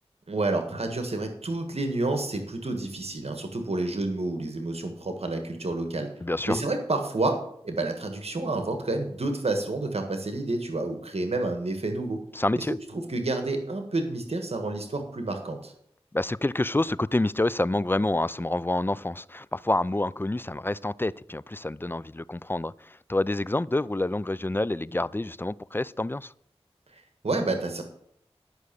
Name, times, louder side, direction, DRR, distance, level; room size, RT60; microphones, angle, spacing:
voice 1, 0.3-6.1 6.5-7.4 7.6-12.2 12.5-12.6 12.9-15.7 26.9-27.8, right 2 dB, 70° right, 1.6 m, -29 dB
voice 2, 6.2-6.6 12.3-12.8 16.1-26.3, left 2 dB, 20° left, 0.4 m, -28 dB
11.5 x 6.1 x 6.8 m
cardioid pair, 40°, 11 cm